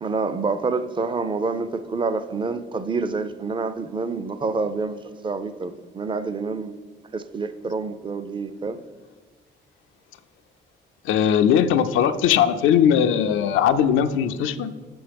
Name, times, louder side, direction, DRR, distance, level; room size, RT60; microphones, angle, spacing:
voice 1, 0.0-6.8 7.1-8.8, right 4 dB, 25° right, 12 dB, 0.4 m, -27 dB
voice 2, 11.0-14.7, left 9 dB, 85° left, 10 dB, 0.4 m, -19 dB
7.7 x 5.5 x 3.4 m, 1.5 s
cardioid pair, 90°, 20 cm